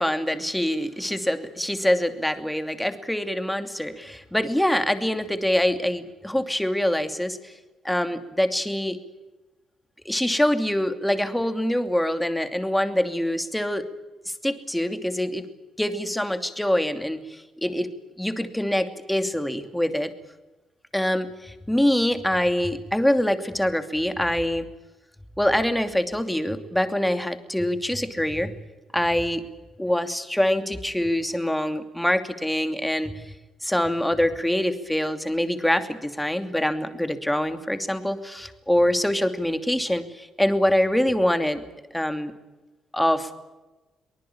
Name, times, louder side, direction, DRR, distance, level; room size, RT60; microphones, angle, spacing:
voice 1, 0.0-7.5 7.8-9.0 10.0-13.9 14.3-15.5 15.8-17.9 18.2-20.1 20.9-24.7 25.4-28.6 28.9-29.4 29.8-33.3 33.6-41.6 41.9-42.3 42.9-43.3, left 1 dB, 5° left, 8 dB, 2.7 m, -24 dB
24.0 x 20.0 x 8.7 m, 1.1 s
cardioid pair, 90°, 0 cm